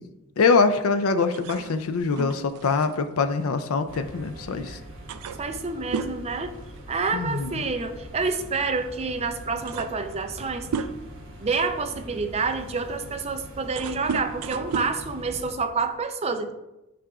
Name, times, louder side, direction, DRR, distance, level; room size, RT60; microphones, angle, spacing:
voice 1, 0.4-4.8 7.1-7.6, left 4 dB, 65° left, 9 dB, 0.4 m, -23 dB
sound 1, 1.3-4.3 4.7-4.8 5.1-7.3 7.5-7.8 8.8-8.9 9.3-11.3 11.9-16.0, right 5 dB, 85° right, 0.4 m, -35 dB
sound 2, 3.9-15.5, equal, 60° right, 1.4 m, -43 dB
voice 2, 5.4-6.5 6.9-10.7 11.4-16.5, right 4 dB, 30° right, 7 dB, 0.5 m, -28 dB
9.3 x 4.9 x 2.4 m, 0.95 s
head